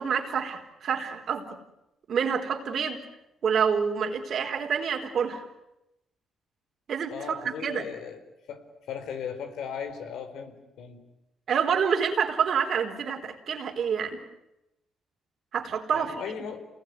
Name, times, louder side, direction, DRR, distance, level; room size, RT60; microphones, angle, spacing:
voice 1, 0.0-1.5 2.1-3.0 3.4-5.4 6.9-7.9 11.5-14.2 15.5-16.1, right 7 dB, 60° right, 4 dB, 4.2 m, -27 dB
voice 2, 7.1-8.2 8.5-11.0 15.9-16.7, left 7 dB, 80° left, 7 dB, 4.3 m, -37 dB
28.5 x 20.5 x 9.7 m, 0.90 s
cardioid pair, 90°, 0 cm